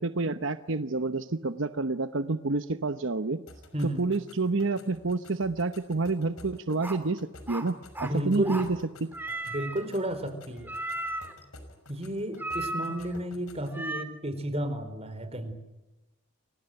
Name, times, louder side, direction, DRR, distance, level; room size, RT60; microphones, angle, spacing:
voice 1, 0.0-3.4 3.8-9.1, right 3 dB, 60° right, 10 dB, 1.0 m, -29 dB
sound 1, 3.5-13.8, left 2 dB, 90° left, 5.6 m, -52 dB
sound 2, 6.8-7.0 7.5-8.2 8.4-8.7 9.1-9.8 10.7-11.4 12.4-13.2 13.7-14.0, right 1 dB, 10° right, 2.8 m, -35 dB
voice 2, 8.0-8.6 9.5-10.7 11.9-15.5, right 1 dB, 30° right, 9 dB, 4.4 m, -32 dB
30.0 x 24.0 x 7.9 m, 1.0 s
head